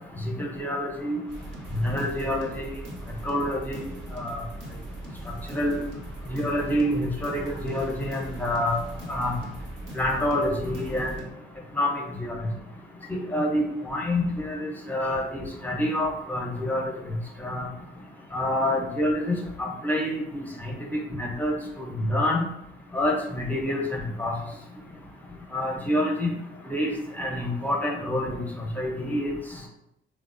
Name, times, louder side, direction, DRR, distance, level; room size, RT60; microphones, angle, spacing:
voice 1, 0.2-1.2 1.7-2.7 3.2-4.4 5.5-5.8 6.3-8.8 9.1-9.3 9.9-11.1 11.8-12.5 13.1-16.9 17.4-17.7 18.3-22.4 22.9-24.3 25.5-26.3 26.7-28.4 28.8-29.3, left 1 dB, 10° left, -1 dB, 0.6 m, -27 dB
sound 1, 1.3-11.3, right 1 dB, 70° right, 0.8 m, -40 dB
3.3 x 2.0 x 2.5 m, 0.82 s
cardioid pair, 90°, 20 cm